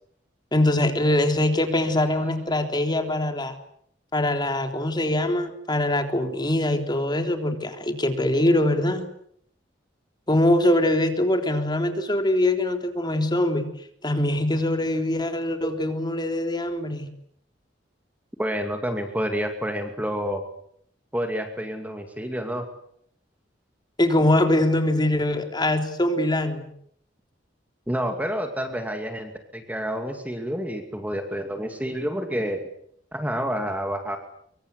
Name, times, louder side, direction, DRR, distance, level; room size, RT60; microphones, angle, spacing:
voice 1, 0.5-3.6 4.1-9.1 10.3-13.7 14.0-17.1 24.0-26.7, left 1 dB, 25° left, 6 dB, 3.6 m, -23 dB
voice 2, 18.4-20.4 21.1-22.7 27.9-32.6 33.1-34.2, equal, 10° right, 5 dB, 2.4 m, -29 dB
25.5 x 24.0 x 8.2 m, 0.69 s
head